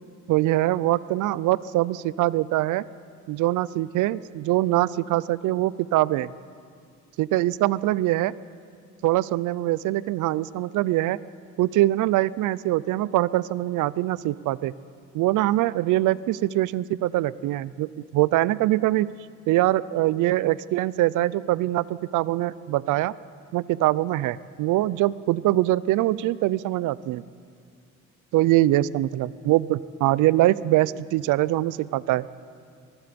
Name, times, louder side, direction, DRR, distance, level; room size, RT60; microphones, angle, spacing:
voice 1, 0.3-2.8 3.3-6.3 7.2-8.3 9.0-11.2 11.6-14.7 15.1-19.1 19.5-23.1 23.5-27.2 28.3-32.3, right 16 dB, 85° right, 19 dB, 0.6 m, -23 dB
25.0 x 20.0 x 5.2 m, 2.2 s
cardioid pair, 90°, 30 cm